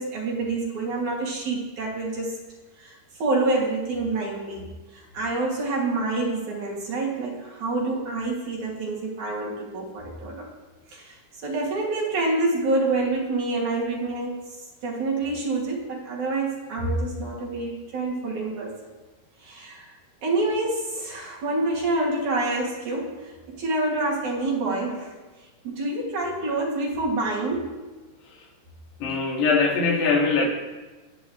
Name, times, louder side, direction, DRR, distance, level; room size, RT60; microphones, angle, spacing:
voice 1, 0.0-2.4 2.8-10.5 10.9-14.4 14.8-18.7 19.4-19.9 20.2-25.1 25.6-27.7, right 2 dB, 50° right, -3 dB, 3.5 m, -27 dB
voice 2, 29.0-30.5, left 4 dB, 85° left, -1 dB, 4.3 m, -21 dB
29.0 x 10.0 x 3.2 m, 1.2 s
omnidirectional pair, 4.7 m